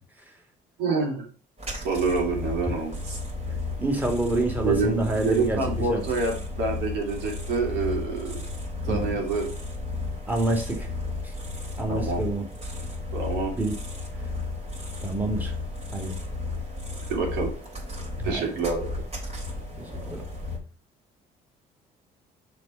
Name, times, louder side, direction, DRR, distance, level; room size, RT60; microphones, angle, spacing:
voice 1, 0.8-1.3 1.8-3.2 4.6-8.4 8.8-9.5 11.9-12.2 13.1-13.5 17.1-17.5 18.2-19.0, right 4 dB, 80° right, 1 dB, 3.0 m, -27 dB
sound 1, 1.6-20.6, left 3 dB, 40° right, 3.5 m, -33 dB
voice 2, 3.8-5.6 5.9-6.0 8.9-9.2 10.3-10.9 11.8-12.4 13.5-13.7 15.0-15.5 15.9-16.1 18.2-18.5 20.1-20.2, right 2 dB, 10° right, 1 dB, 2.4 m, -27 dB
6.6 x 4.5 x 5.7 m, 0.37 s
cardioid pair, 110°, 17 cm